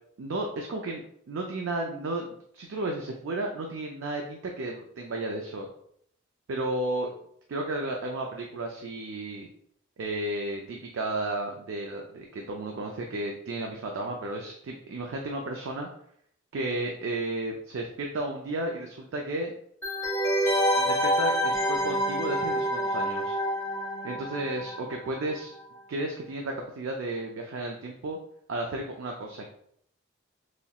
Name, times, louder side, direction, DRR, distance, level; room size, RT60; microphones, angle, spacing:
voice 1, 0.2-1.0 1.3-2.2 2.5-5.7 6.5-7.1 7.5-9.5 10.0-15.9 16.5-19.5 20.8-23.4 24.0-25.5 25.9-28.2 28.5-29.4, right 2 dB, 70° right, 1 dB, 0.4 m, -33 dB
sound 1, 19.8-25.3 25.5-25.6, equal, 15° left, 1.1 m, -27 dB
3.0 x 2.8 x 2.3 m, 0.67 s
head